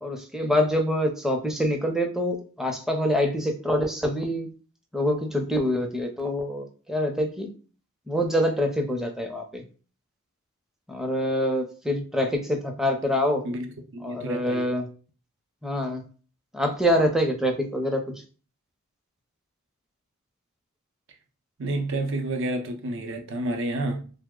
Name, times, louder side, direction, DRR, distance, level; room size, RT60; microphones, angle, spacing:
voice 1, 0.0-4.5 4.9-7.5 8.1-9.6 10.9-13.4 14.0-14.9 15.6-16.0 16.5-18.0, equal, ahead, 0.5 m, -25 dB
voice 2, 13.9-14.7 21.6-24.1, right 1 dB, 60° right, 0.6 m, -29 dB
3.0 x 2.0 x 3.6 m
head